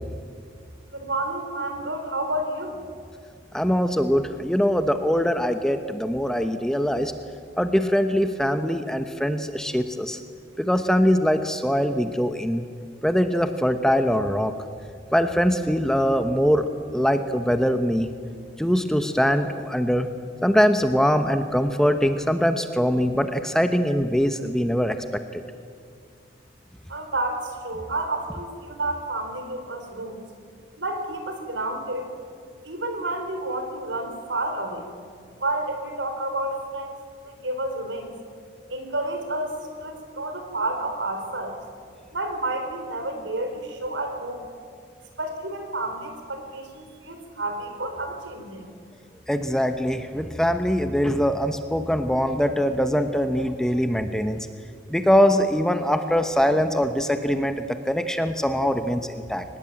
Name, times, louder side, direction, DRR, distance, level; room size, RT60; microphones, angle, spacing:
voice 1, 0.9-2.8 26.9-30.2 30.8-32.0 32.6-34.9 35.4-37.0 37.2-38.1 38.7-41.6 42.1-44.5 45.2-48.6, right 2 dB, 80° right, 5 dB, 4.2 m, -30 dB
voice 2, 3.5-7.1 7.6-10.2 10.6-12.6 13.0-14.5 15.1-16.7 16.9-18.1 18.6-20.1 20.4-25.0 25.3-25.4 49.3-54.5 54.9-59.4, equal, 5° left, 8 dB, 0.9 m, -22 dB
23.5 x 20.0 x 8.8 m, 2.2 s
head